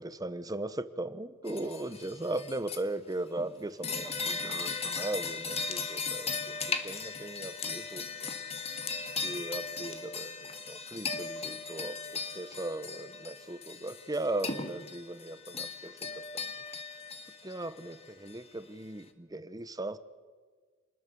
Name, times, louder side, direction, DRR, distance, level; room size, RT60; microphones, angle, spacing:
voice 1, 0.0-8.3 9.2-16.5 17.4-20.0, right 2 dB, 20° right, 12 dB, 1.1 m, -38 dB
sound 1, 1.5-2.8 3.4-18.3, left 4 dB, 30° left, 1.8 m, -37 dB
28.5 x 20.5 x 7.1 m, 1.5 s
head